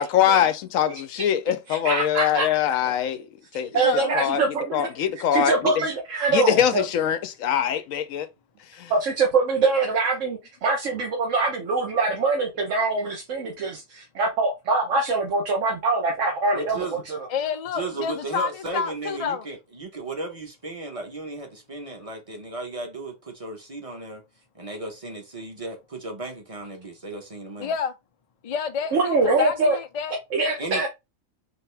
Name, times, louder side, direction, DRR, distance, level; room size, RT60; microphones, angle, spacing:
voice 1, 0.0-3.3 3.5-3.8 4.1-4.4 4.7-5.7 6.3-8.3 8.8-8.9, left 9 dB, 80° left, 1.0 m, -23 dB
voice 2, 1.7-2.5 2.8-3.0 3.5-4.9 5.3-6.8 8.9-17.3 28.9-29.8 30.3-30.9, right 3 dB, 70° right, 1.3 m, -24 dB
voice 3, 3.8-4.2 17.3-19.4 27.6-27.9 28.4-30.1, left 6 dB, 50° left, 0.4 m, -28 dB
voice 4, 16.5-17.0 17.7-24.2 24.5-27.7 30.6-30.9, right 2 dB, 30° right, 0.9 m, -35 dB
4.4 x 2.8 x 3.3 m
omnidirectional pair, 1.4 m